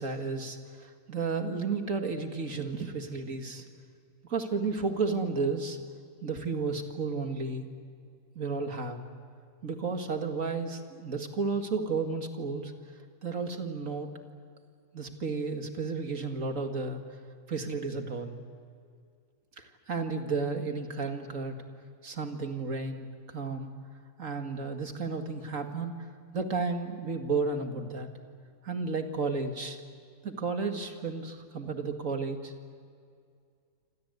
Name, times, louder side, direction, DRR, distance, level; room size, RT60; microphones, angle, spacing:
voice 1, 0.0-3.6 4.3-5.8 6.2-7.7 8.4-9.0 9.6-12.7 13.2-14.1 14.9-17.2 17.5-18.3 19.6-21.5 22.0-23.7 24.2-28.1 28.6-29.8 30.2-32.5, right 4 dB, 60° right, 5 dB, 2.5 m, -33 dB
27.5 x 26.5 x 8.2 m, 2.3 s
omnidirectional pair, 1.6 m